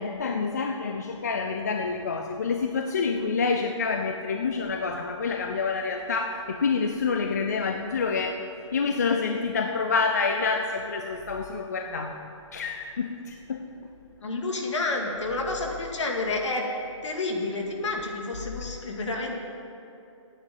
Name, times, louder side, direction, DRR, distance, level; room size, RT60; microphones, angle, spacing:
voice 1, 0.0-8.4 8.7-12.2 12.5-13.7, left 4 dB, 30° left, 4 dB, 0.4 m, -27 dB
voice 2, 14.2-16.6 17.0-19.4, left 2 dB, 65° left, 1 dB, 2.1 m, -29 dB
9.2 x 8.0 x 9.0 m, 2.8 s
hypercardioid pair, 175°, 17 cm